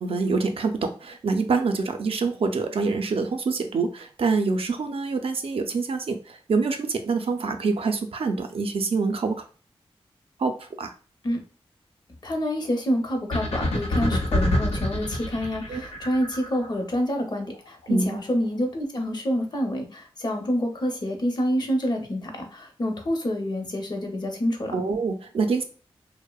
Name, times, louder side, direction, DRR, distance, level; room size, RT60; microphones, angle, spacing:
voice 1, 0.0-9.4 10.4-10.9 15.7-15.8 17.9-18.2 24.7-25.6, right 4 dB, 65° right, 6 dB, 0.4 m, -26 dB
voice 2, 12.2-24.7, equal, 45° left, 3 dB, 0.7 m, -27 dB
sound 1, 13.3-16.7, left 1 dB, 90° left, 0.6 m, -26 dB
2.7 x 2.0 x 2.3 m, 0.38 s
cardioid pair, 60°, 10 cm